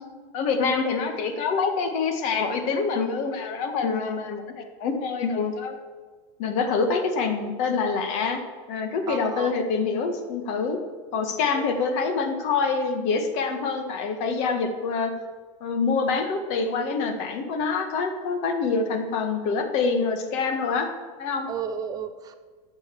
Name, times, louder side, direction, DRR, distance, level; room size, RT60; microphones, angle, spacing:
voice 1, 0.3-5.8 6.4-8.4 8.7-10.8 11.1-15.1 15.6-20.9 21.2-21.5, left 4 dB, 45° left, 6 dB, 1.7 m, -26 dB
voice 2, 9.1-9.5 11.5-11.7 21.5-22.3, right 8 dB, 25° right, 9 dB, 0.6 m, -33 dB
12.0 x 7.4 x 7.1 m, 1.5 s
supercardioid pair, 155°, 16 cm